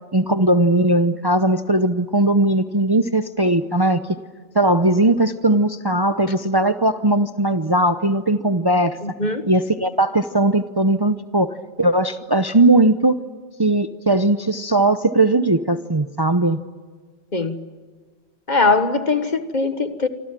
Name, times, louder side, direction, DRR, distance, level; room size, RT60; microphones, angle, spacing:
voice 1, 0.1-4.0 4.5-9.0 9.5-13.2 13.6-16.6, right 2 dB, 25° right, 9 dB, 0.7 m, -18 dB
voice 2, 9.0-9.5 17.3-17.6 18.5-20.1, left 3 dB, 40° left, 9 dB, 1.6 m, -21 dB
27.5 x 25.5 x 7.6 m, 1.5 s
omnidirectional pair, 1.2 m